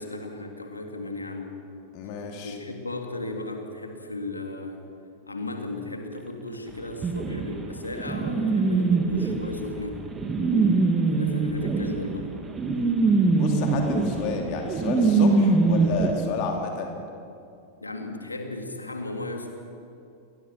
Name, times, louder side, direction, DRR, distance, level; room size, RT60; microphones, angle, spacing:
voice 1, 0.0-1.5 2.4-4.8 5.3-10.0 11.1-12.3 17.8-19.5, left 2 dB, 80° left, 3 dB, 3.1 m, -35 dB
voice 2, 1.9-2.6 13.3-17.0, left 5 dB, 45° left, 2 dB, 2.8 m, -31 dB
sound 1, 7.0-16.1, right 3 dB, 20° right, 2.8 m, -23 dB
29.5 x 22.5 x 6.1 m, 2.5 s
figure-of-eight pair, 90°, 0 cm